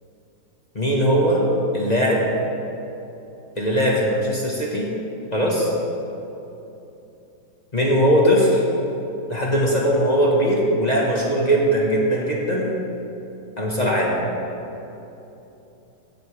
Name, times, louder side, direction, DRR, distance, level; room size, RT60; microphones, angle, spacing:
voice 1, 0.7-1.4 1.7-2.3 3.6-4.9 5.3-5.7 7.7-8.6 9.3-12.7 13.6-14.2, equal, 25° left, -3 dB, 1.3 m, -20 dB
15.5 x 9.7 x 3.4 m, 3.0 s
omnidirectional pair, 2.0 m